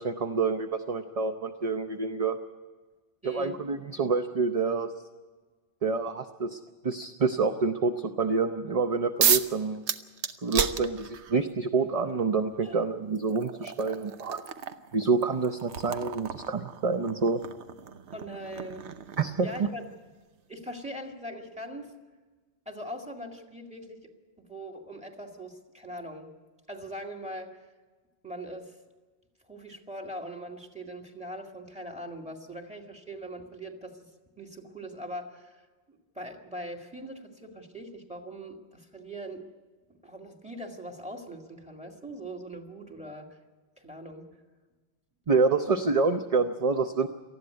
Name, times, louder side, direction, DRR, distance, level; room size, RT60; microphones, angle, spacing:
voice 1, 0.0-2.4 3.2-4.9 5.8-6.6 6.8-9.8 10.4-14.4 14.9-17.4 19.2-19.7 45.3-47.1, right 4 dB, 40° right, 7 dB, 0.7 m, -27 dB
voice 2, 3.2-3.6 12.6-12.8 18.1-18.9 19.4-19.8 20.5-21.9 22.7-24.1 24.4-26.3 26.7-27.6 28.2-28.7 29.5-34.1 34.4-35.6 35.9-39.5 40.0-43.4 43.8-44.3, right 1 dB, 5° right, 3 dB, 2.1 m, -41 dB
sound 1, 9.2-9.5 9.9-11.4 12.5-12.6 13.2-19.8, right 7 dB, 80° right, 1.1 m, -32 dB
19.0 x 14.0 x 9.6 m, 1.3 s
omnidirectional pair, 1.2 m